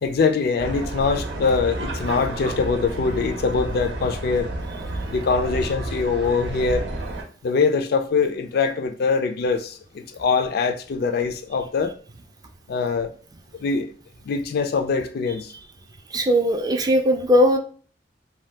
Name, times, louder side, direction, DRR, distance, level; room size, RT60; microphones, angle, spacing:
voice 1, 0.0-4.5 5.1-6.9 7.4-11.9 12.7-13.1 13.5-13.9 14.3-15.5, left 4 dB, 60° left, 0.3 m, -23 dB
sound 1, 0.6-7.2, right 1 dB, 75° right, 0.6 m, -31 dB
voice 2, 16.1-17.6, equal, 20° right, 0.3 m, -18 dB
2.7 x 2.2 x 3.2 m
head